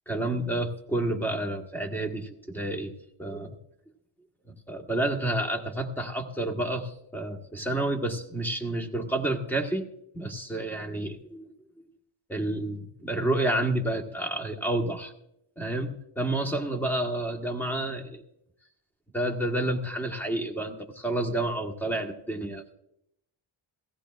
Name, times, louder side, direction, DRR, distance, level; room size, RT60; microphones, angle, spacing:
voice 1, 0.1-2.9 3.2-3.6 4.5-9.9 10.1-11.8 12.3-15.1 15.6-18.2 19.1-22.7, right 1 dB, 5° left, 3 dB, 1.4 m, -30 dB
17.0 x 15.0 x 2.5 m, 0.79 s
wide cardioid pair, 110°, 50 cm